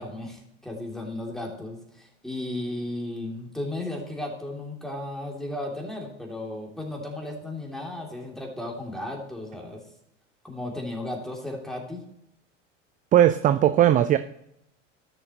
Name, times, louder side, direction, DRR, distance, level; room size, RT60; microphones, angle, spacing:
voice 1, 0.0-9.8 10.4-12.0, left 1 dB, ahead, -1 dB, 2.8 m, -35 dB
voice 2, 13.1-14.2, right 11 dB, 25° right, 11 dB, 0.4 m, -18 dB
14.0 x 6.6 x 3.0 m, 0.77 s
hypercardioid pair, 80°, 37 cm